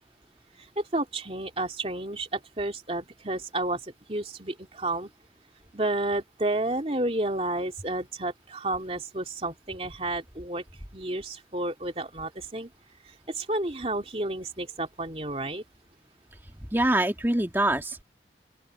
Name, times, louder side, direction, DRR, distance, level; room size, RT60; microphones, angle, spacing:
voice 1, 0.6-5.1 5.7-10.6 10.9-12.7 13.3-15.6, right 2 dB, 35° right, 2.8 m, -31 dB
voice 2, 16.7-18.0, right 1 dB, 15° right, 2.2 m, -24 dB
open air
head